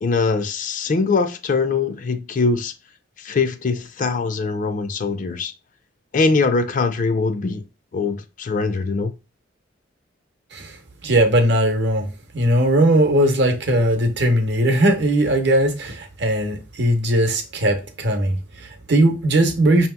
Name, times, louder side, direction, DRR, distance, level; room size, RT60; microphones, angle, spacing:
voice 1, 0.0-2.7 3.2-5.5 6.1-7.6 7.9-9.1, left 4 dB, 40° left, 0.4 m, -22 dB
voice 2, 11.0-12.1 12.3-19.9, right 1 dB, 60° right, 0.8 m, -19 dB
5.4 x 2.8 x 2.2 m
head